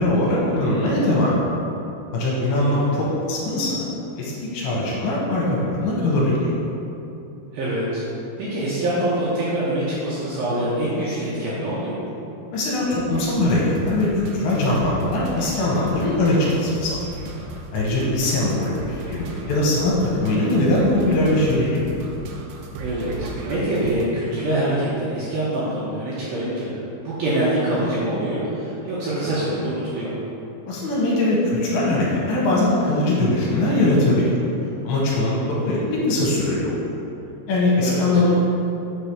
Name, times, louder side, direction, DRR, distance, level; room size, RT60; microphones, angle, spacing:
voice 1, 0.0-1.3 2.1-3.9 4.2-6.5 12.5-17.0 17.7-21.8 30.7-34.4 34.8-36.8 37.5-38.4, left 1 dB, 75° left, -5 dB, 3.1 m, -21 dB
voice 2, 2.4-3.0 7.5-8.0 8.4-12.0 18.1-18.6 22.8-26.7 27.0-30.2 37.8-38.2, right 1 dB, 75° right, -9 dB, 2.4 m, -25 dB
sound 1, 13.1-24.1, right 1 dB, 90° right, 3.1 m, -36 dB
7.0 x 3.4 x 5.7 m, 2.9 s
omnidirectional pair, 5.4 m